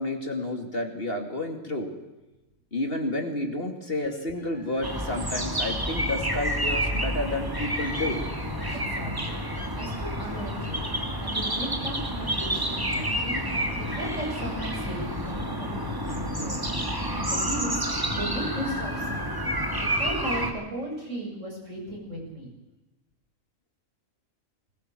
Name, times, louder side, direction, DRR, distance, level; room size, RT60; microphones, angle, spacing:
voice 1, 0.0-1.9 2.7-8.3 8.7-8.8, left 1 dB, 45° left, 4 dB, 2.7 m, -30 dB
sound 1, 4.8-20.5, equal, 15° right, 2.3 m, -29 dB
voice 2, 8.7-9.4 9.7-10.9 11.2-13.4 13.9-16.6 17.1-17.8 18.1-19.4 19.9-22.5, right 1 dB, 65° right, -1 dB, 8.0 m, -36 dB
20.5 x 19.5 x 7.7 m, 1.1 s
omnidirectional pair, 1.4 m